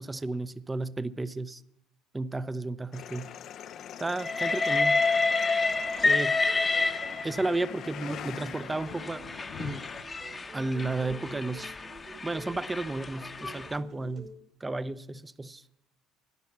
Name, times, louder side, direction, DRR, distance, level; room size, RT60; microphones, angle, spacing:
voice 1, 0.0-1.6 2.1-3.3 4.0-5.0 6.0-6.4 7.2-9.2 9.6-9.8 10.5-11.7 12.2-14.2 14.6-15.6, right 2 dB, 15° right, 0.6 m, -33 dB
sound 1, 2.9-10.0, left 9 dB, 55° left, 0.5 m, -43 dB
Train, 4.2-7.6 8.5-13.7, left 3 dB, 20° left, 0.8 m, -29 dB
sound 2, 5.8-14.3, right 3 dB, 45° right, 2.1 m, -49 dB
12.5 x 10.0 x 7.2 m
cardioid pair, 105°, 0 cm